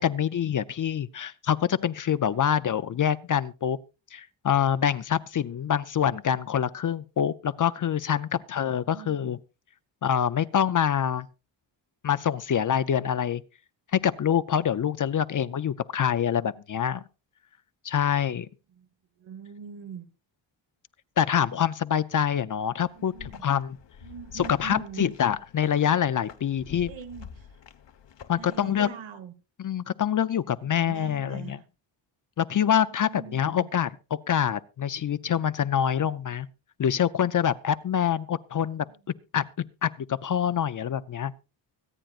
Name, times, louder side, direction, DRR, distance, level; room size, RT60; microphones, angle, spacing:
voice 1, 0.0-3.8 4.1-9.4 10.0-11.3 12.0-13.4 13.9-17.0 17.8-18.5 21.2-23.8 24.3-26.9 28.3-28.9 29.6-31.6 32.4-36.5 36.8-38.9 39.3-39.4 39.8-41.3, left 9 dB, 45° left, 0.5 m, -25 dB
voice 2, 8.9-9.3 18.7-18.9 19.2-20.1 22.9-23.5 24.0-25.1 26.9-27.5 28.3-29.3 30.6-31.6 32.8-33.7, right 7 dB, 70° right, 1.4 m, -42 dB
sound 1, 22.8-28.9, left 7 dB, 65° left, 1.2 m, -48 dB
24.5 x 9.0 x 2.4 m
wide cardioid pair, 125°, 47 cm